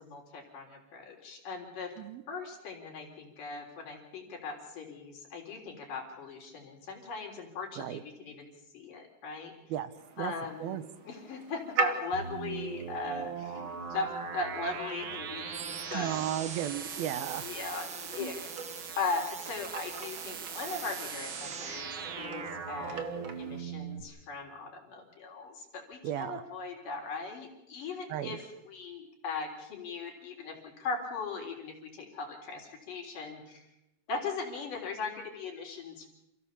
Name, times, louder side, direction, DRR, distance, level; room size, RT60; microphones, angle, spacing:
voice 1, 0.0-1.9 2.3-8.5 8.7-9.5 10.2-16.2 17.4-18.4 19.0-33.7 34.1-36.1, left 4 dB, 60° left, 1 dB, 5.3 m, -39 dB
sound 1, 10.0-23.6, right 4 dB, 40° right, 2.1 m, -42 dB
sound 2, 12.1-24.0, right 6 dB, 55° right, 1.3 m, -40 dB
voice 2, 15.9-17.4 26.0-26.4 28.1-28.4, right 11 dB, 80° right, 13 dB, 2.7 m, -34 dB
28.0 x 15.5 x 7.3 m, 0.90 s
omnidirectional pair, 4.4 m